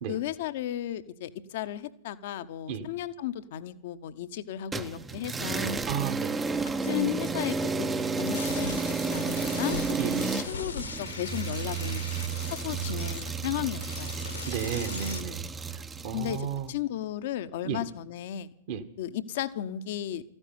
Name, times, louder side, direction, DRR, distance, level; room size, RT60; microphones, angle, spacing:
voice 1, 0.1-5.8 6.8-7.9 8.2-12.0 12.5-14.1 16.1-18.5 19.0-20.2, left 12 dB, 50° left, 13 dB, 0.9 m, -34 dB
sound 1, 4.7-16.5, right 4 dB, 15° right, 0.8 m, -32 dB
voice 2, 5.9-6.3 10.0-10.3 14.5-15.4 15.7-16.7 17.6-17.8 18.7-18.8, right 8 dB, 50° right, 8 dB, 1.5 m, -33 dB
sound 2, 8.3-15.2, left 4 dB, 80° left, 1.8 m, -40 dB
14.0 x 9.9 x 9.6 m, 0.78 s
figure-of-eight pair, 100°, 0 cm